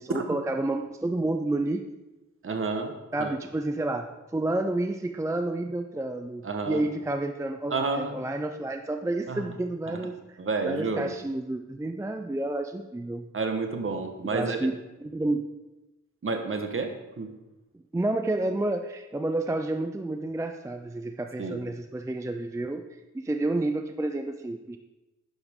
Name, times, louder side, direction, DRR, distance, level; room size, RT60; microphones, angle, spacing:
voice 1, 0.0-1.8 3.1-4.1 4.3-10.4 10.6-13.3 14.3-14.7 15.0-15.4 17.7-24.8, right 2 dB, 10° right, 6 dB, 0.4 m, -30 dB
voice 2, 2.4-3.3 6.4-6.9 7.7-8.2 9.3-9.4 9.9-10.0 10.4-11.1 13.3-14.6 16.2-17.3 21.4-21.6, right 4 dB, 45° right, 5 dB, 1.2 m, -30 dB
11.0 x 10.0 x 3.6 m, 1.0 s
wide cardioid pair, 170°, 30 cm